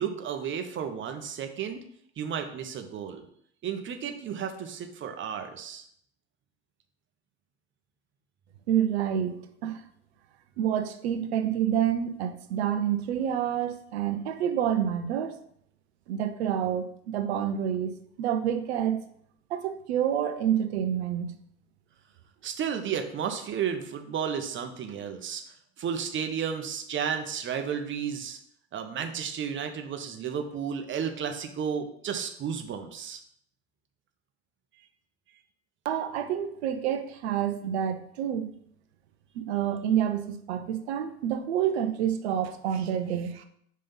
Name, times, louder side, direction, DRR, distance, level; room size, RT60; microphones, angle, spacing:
voice 1, 0.0-1.8 2.2-3.3 3.6-5.8 22.4-25.4 25.8-28.4 28.7-33.2, right 7 dB, 35° right, 6 dB, 1.0 m, -33 dB
voice 2, 8.7-9.8 10.6-15.4 16.1-19.0 19.5-21.3 35.8-38.5 39.3-43.4, right 9 dB, 70° right, 8 dB, 0.8 m, -28 dB
5.2 x 3.3 x 5.5 m, 0.67 s
hypercardioid pair, 75°, 33 cm